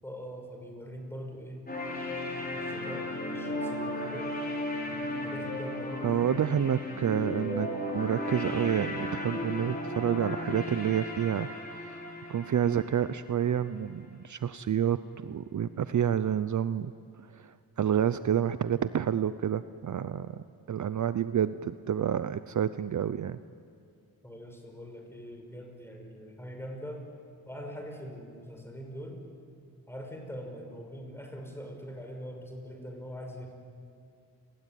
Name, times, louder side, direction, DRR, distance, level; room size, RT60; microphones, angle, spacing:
voice 1, 0.0-1.6 2.3-4.4 4.9-6.3 6.9-7.0 24.2-27.1 27.5-29.3 29.9-33.5, equal, 5° left, 3 dB, 6.0 m, -42 dB
sound 1, 1.7-13.7, left 1 dB, 25° left, 5.6 m, -35 dB
voice 2, 6.0-7.7 7.9-11.5 11.8-12.0 12.3-16.9 17.2-20.4 20.7-23.4, right 9 dB, 50° right, 13 dB, 0.7 m, -29 dB
29.5 x 21.0 x 9.2 m, 2.4 s
wide cardioid pair, 105°, 37 cm